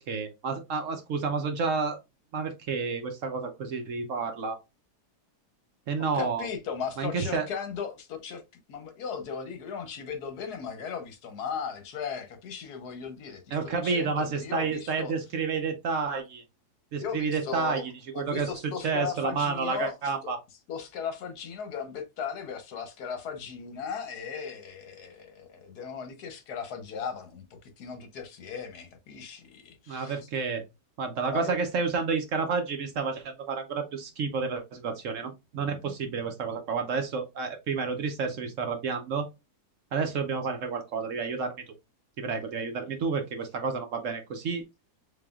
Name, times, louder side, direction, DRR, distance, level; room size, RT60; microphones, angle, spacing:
voice 1, 0.1-2.0 2.3-4.6 5.9-6.5 7.0-7.5 13.5-16.4 16.9-20.4 29.9-30.6 31.0-39.3 39.9-41.5 42.2-44.6, right 5 dB, 60° right, 0.9 m, -30 dB
voice 2, 6.0-8.4 8.7-15.2 17.0-30.3 31.3-31.6, left 6 dB, 75° left, 1.4 m, -37 dB
4.2 x 3.4 x 2.3 m
omnidirectional pair, 1.7 m